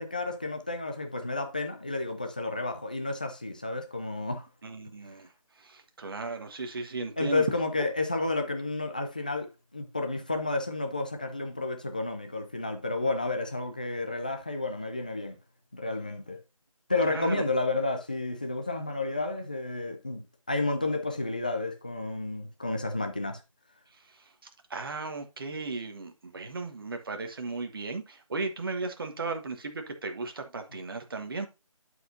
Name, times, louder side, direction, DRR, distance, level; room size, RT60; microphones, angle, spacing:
voice 1, 0.0-4.5 5.1-5.2 7.2-15.4 15.7-16.4 16.9-23.4, left 2 dB, 15° left, 0.4 m, -31 dB
voice 2, 4.6-7.5 17.0-17.4 23.9-31.5, right 3 dB, 40° right, 1.3 m, -36 dB
11.5 x 4.7 x 2.7 m
figure-of-eight pair, 165°, 18 cm